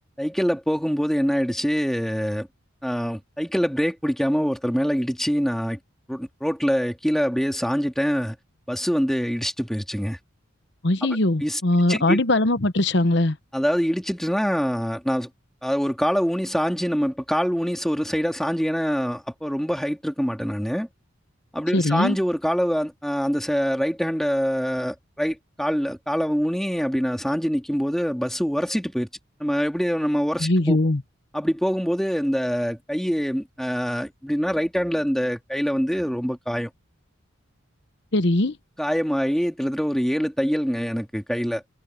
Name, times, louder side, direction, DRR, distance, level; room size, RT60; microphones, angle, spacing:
voice 1, 0.2-2.5 2.8-5.8 6.1-8.4 8.7-10.2 11.4-11.6 11.9-12.2 13.5-15.3 15.6-20.9 21.5-29.1 29.4-30.8 31.3-36.7 38.8-41.6, equal, ahead, 2.9 m, -24 dB
voice 2, 10.8-13.4 21.7-22.2 30.4-31.0 38.1-38.6, left 1 dB, 55° left, 1.1 m, -21 dB
head